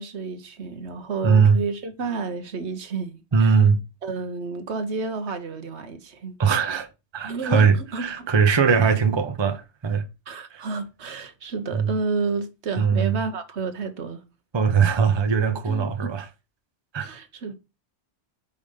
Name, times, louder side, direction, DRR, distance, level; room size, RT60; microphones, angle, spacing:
voice 1, 0.0-3.6 4.0-6.4 7.2-8.3 10.3-14.2 15.7-16.2 17.0-17.5, right 4 dB, 70° right, 1.3 m, -31 dB
voice 2, 1.2-1.6 3.3-3.8 6.4-10.1 10.5-10.6 11.7-11.9 12.8-13.2 14.5-16.3 16.9-17.1, right 6 dB, 30° right, 0.7 m, -20 dB
5.5 x 5.0 x 5.3 m
omnidirectional pair, 1.2 m